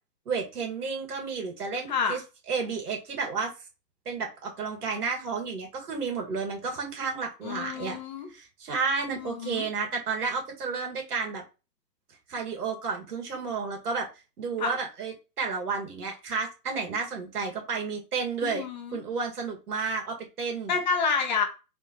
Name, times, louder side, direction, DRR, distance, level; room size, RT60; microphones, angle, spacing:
voice 1, 0.3-2.2 2.5-3.5 4.1-8.0 8.3-11.4 12.3-14.1 14.4-18.7 18.9-20.8, right 5 dB, 65° right, 2.2 m, -31 dB
voice 2, 7.4-8.3 9.1-9.7 14.6-14.7 18.4-19.0 20.7-21.4, left 5 dB, 30° left, 0.7 m, -29 dB
4.8 x 3.5 x 3.0 m
hypercardioid pair, 140°, 49 cm